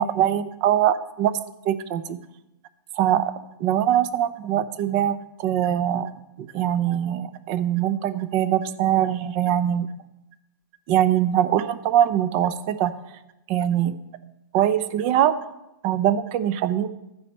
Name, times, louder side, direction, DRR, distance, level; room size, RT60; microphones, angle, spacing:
voice 1, 0.0-1.3 1.6-2.2 3.0-3.3 3.6-6.1 6.4-9.9 10.9-12.9 13.5-13.9 14.5-15.3 15.8-16.9, right 11 dB, 35° right, 14 dB, 0.7 m, -22 dB
12.5 x 9.8 x 4.4 m, 0.91 s
hypercardioid pair, 150°, 11 cm